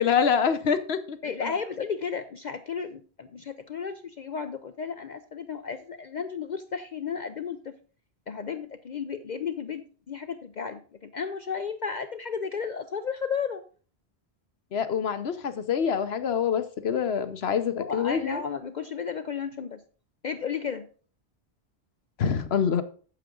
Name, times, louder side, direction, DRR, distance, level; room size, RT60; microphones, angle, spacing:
voice 1, 0.0-1.5 14.7-18.4 22.2-22.8, left 7 dB, 65° left, 1.1 m, -26 dB
voice 2, 1.2-7.7 8.3-13.6 17.8-19.8 20.2-20.9, left 6 dB, 50° left, 0.6 m, -33 dB
9.2 x 7.3 x 3.8 m
omnidirectional pair, 1.1 m